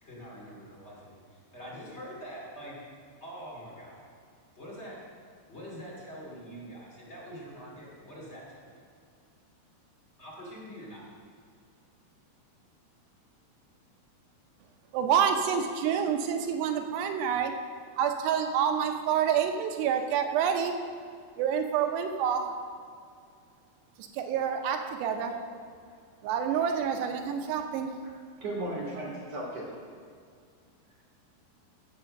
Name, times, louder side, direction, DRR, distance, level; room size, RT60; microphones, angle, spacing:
voice 1, 0.0-2.8 3.2-4.0 4.5-5.0 5.5-8.8 10.2-11.0, equal, 20° left, -5 dB, 2.0 m, -44 dB
voice 2, 14.9-17.5 18.0-20.7 21.4-22.4 24.1-25.3 26.2-27.9, right 8 dB, 85° right, 5 dB, 2.9 m, -27 dB
voice 3, 26.5-26.9 28.4-29.7, right 1 dB, 50° right, -4 dB, 2.1 m, -36 dB
15.5 x 5.5 x 6.5 m, 2.2 s
omnidirectional pair, 4.8 m